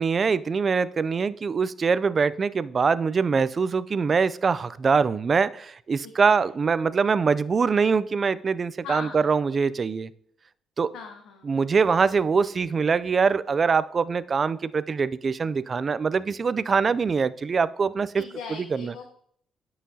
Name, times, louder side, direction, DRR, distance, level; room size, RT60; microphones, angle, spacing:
voice 1, 0.0-10.1 10.8-10.9 11.5-18.1 18.7-18.9, right 5 dB, 40° right, 16 dB, 0.3 m, -23 dB
voice 2, 6.0-6.5 8.8-9.4 10.9-11.6 18.1-19.1, left 5 dB, 90° left, 4 dB, 0.8 m, -40 dB
9.9 x 5.7 x 2.8 m, 0.64 s
cardioid pair, 90°, 0 cm